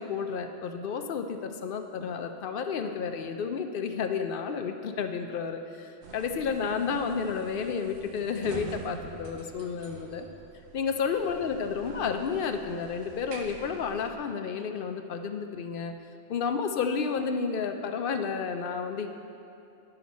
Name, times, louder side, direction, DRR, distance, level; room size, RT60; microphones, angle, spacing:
voice 1, 0.0-10.3 10.7-15.9 16.3-19.1, left 6 dB, 60° left, 6 dB, 0.7 m, -31 dB
sound 1, 6.0-14.2, right 4 dB, 85° right, 1.1 m, -46 dB
11.0 x 5.8 x 4.2 m, 2.7 s
omnidirectional pair, 1.1 m